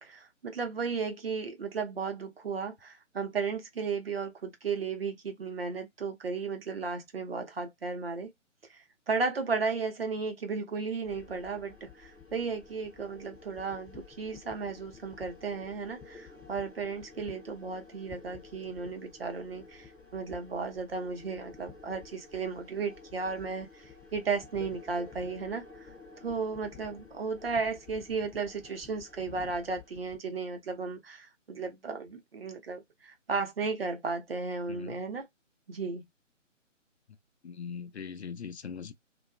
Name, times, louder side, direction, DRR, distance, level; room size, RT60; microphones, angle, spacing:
voice 1, 0.0-8.3 8.7-25.9 26.2-35.3 35.7-36.0, right 4 dB, 50° right, 0.8 m, -35 dB
sound 1, 11.0-30.2, left 5 dB, ahead, 0.5 m, -51 dB
voice 2, 34.7-35.0 37.4-38.9, left 6 dB, 60° left, 0.5 m, -41 dB
2.8 x 2.3 x 2.2 m
figure-of-eight pair, 150°, 38 cm